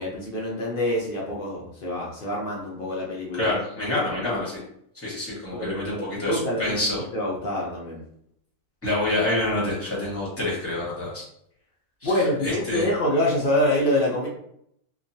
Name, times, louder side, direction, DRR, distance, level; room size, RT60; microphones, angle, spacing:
voice 1, 0.0-3.5 4.1-4.2 5.5-8.0 12.0-14.3, left 1 dB, 60° left, -3 dB, 0.6 m, -26 dB
voice 2, 3.4-4.6 4.9-7.0 8.8-11.2 12.0-12.1 12.4-12.9, left 2 dB, 10° left, -7 dB, 0.9 m, -27 dB
2.9 x 2.3 x 2.6 m, 0.71 s
omnidirectional pair, 1.6 m